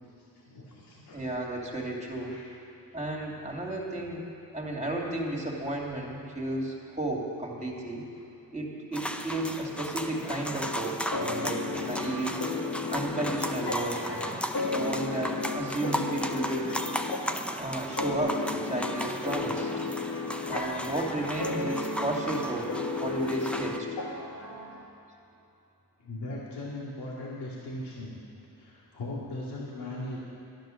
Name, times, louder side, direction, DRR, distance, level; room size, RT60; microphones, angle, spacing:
voice 1, 0.5-1.2 2.2-2.5 26.0-28.2 28.6-30.2, left 1 dB, 85° left, -6 dB, 2.6 m, -38 dB
voice 2, 1.1-2.4 2.9-8.1 8.5-12.4 12.9-14.4 14.7-16.8 17.6-19.7 20.5-22.7 23.0-23.9, right 1 dB, 15° right, -2 dB, 2.7 m, -33 dB
sound 1, 8.9-23.8, equal, 5° left, 0.7 m, -36 dB
sound 2, 11.1-24.8, left 3 dB, 70° left, 2.2 m, -34 dB
12.0 x 11.0 x 6.5 m, 2.7 s
cardioid pair, 85°, 39 cm